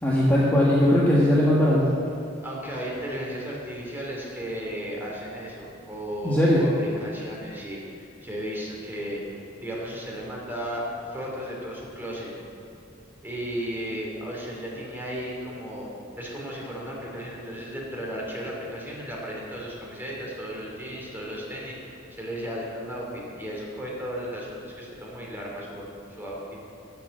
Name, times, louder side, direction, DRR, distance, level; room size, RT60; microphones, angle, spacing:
voice 1, 0.0-1.8 6.2-6.6, left 1 dB, 10° left, -7 dB, 1.5 m, -19 dB
voice 2, 2.4-10.8 11.1-12.3 13.2-15.9 16.2-25.9 26.2-26.4, equal, 10° right, -4 dB, 2.9 m, -35 dB
12.5 x 6.8 x 7.7 m, 2.5 s
head